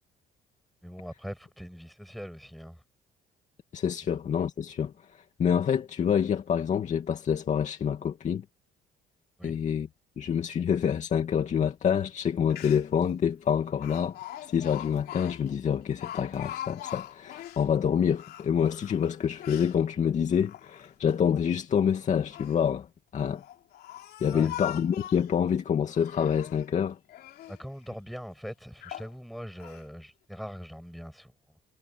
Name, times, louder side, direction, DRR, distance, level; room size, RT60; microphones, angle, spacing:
voice 1, 0.8-2.8 9.4-9.6 24.3-24.5 27.5-31.3, equal, ahead, 7.4 m, -41 dB
voice 2, 3.7-8.4 9.4-9.9 10.2-22.9 23.1-23.4 24.2-27.0, left 8 dB, 45° left, 2.4 m, -27 dB
Speech, 12.2-12.3 12.5-13.0 13.8-17.7 18.1-19.8 20.3-21.1 22.1-22.6 23.3-25.4 25.9-26.7 27.1-27.6 28.2-28.3 28.8-29.1 29.6-29.8, left 13 dB, 70° left, 3.3 m, -42 dB
cardioid pair, 110°, 17 cm